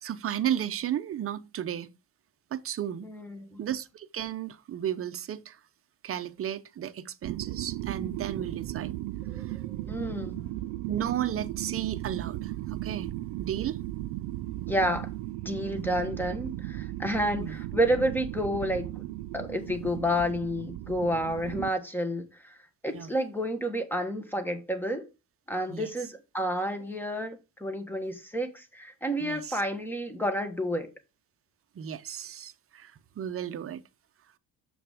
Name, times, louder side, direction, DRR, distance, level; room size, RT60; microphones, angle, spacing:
voice 1, 0.0-1.9 2.5-3.1 3.6-5.6 6.0-8.9 9.3-9.6 10.9-13.1 13.4-13.8 17.4-17.5 22.9-23.1 25.7-25.9 29.2-29.6 31.7-33.8, right 10 dB, 35° right, 0.7 m, -34 dB
voice 2, 3.0-3.6 9.3-9.6 9.9-10.4 14.7-15.1 15.4-18.9 19.3-22.6 22.8-25.1 25.5-30.9, equal, 5° left, 1.3 m, -30 dB
sound 1, 7.2-21.7, right 16 dB, 90° right, 0.5 m, -36 dB
7.0 x 5.9 x 3.5 m
cardioid pair, 140°, 39 cm